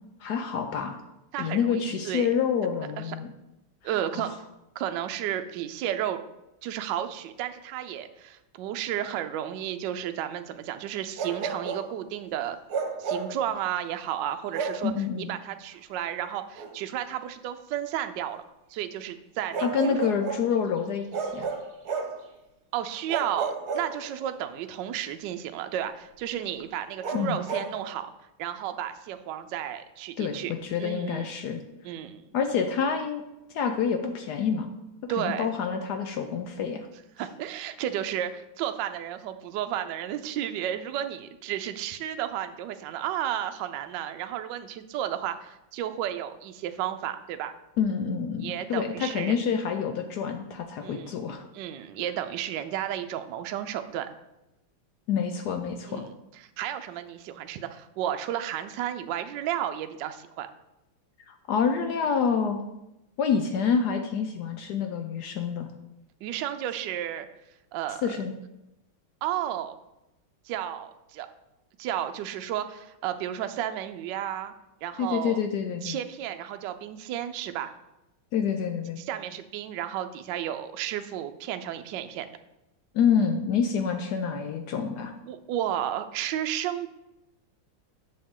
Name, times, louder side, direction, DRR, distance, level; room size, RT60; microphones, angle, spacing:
voice 1, 0.2-1.0 1.4-3.3 3.9-4.3 14.8-15.3 19.6-21.5 27.1-27.4 30.2-31.6 32.3-33.2 33.5-34.7 35.2-36.9 47.8-51.4 55.1-56.0 61.3-62.6 63.2-65.7 68.0-68.3 75.0-76.0 78.3-79.0 82.9-85.1, left 6 dB, 75° left, 6 dB, 0.9 m, -27 dB
voice 2, 1.3-2.3 3.0-3.2 3.8-4.3 4.7-6.2 6.6-12.6 13.0-14.9 15.2-18.4 18.7-20.0 22.7-28.1 28.4-30.5 30.8-31.3 31.8-32.4 35.1-35.5 37.2-47.5 48.4-49.3 50.8-51.1 51.5-54.1 55.9-60.5 66.2-67.3 67.7-68.0 69.2-69.8 70.5-71.3 71.8-74.5 74.8-75.4 75.8-77.7 79.0-82.3 85.3-86.9, right 11 dB, 75° right, 8 dB, 1.1 m, -32 dB
Bark, 11.2-11.9 12.7-13.4 14.5-14.9 16.6-16.7 19.5-20.5 21.1-22.2 23.1-24.3 27.0-27.7, right 5 dB, 55° right, 1.3 m, -32 dB
7.7 x 6.4 x 3.6 m, 0.91 s
omnidirectional pair, 2.3 m